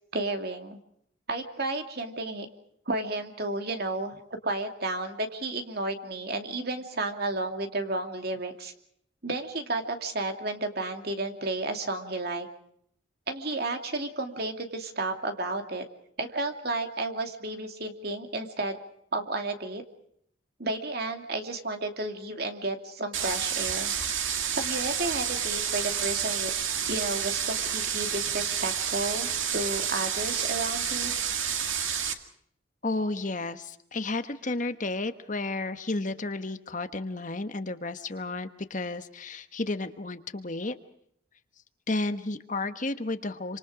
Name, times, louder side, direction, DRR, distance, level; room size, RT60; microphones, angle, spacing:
voice 1, 0.1-0.8 1.3-2.5 2.9-8.7 9.2-12.5 13.3-15.8 16.2-18.7 19.1-19.8 20.6-23.9 24.5-26.5 26.9-31.1, right 2 dB, 55° right, 5 dB, 2.7 m, -32 dB
sound 1, 23.1-32.1, right 8 dB, 85° right, 2.2 m, -29 dB
voice 2, 32.8-40.8 41.9-43.6, left 2 dB, 40° left, 9 dB, 1.2 m, -32 dB
27.5 x 26.0 x 5.0 m, 0.68 s
head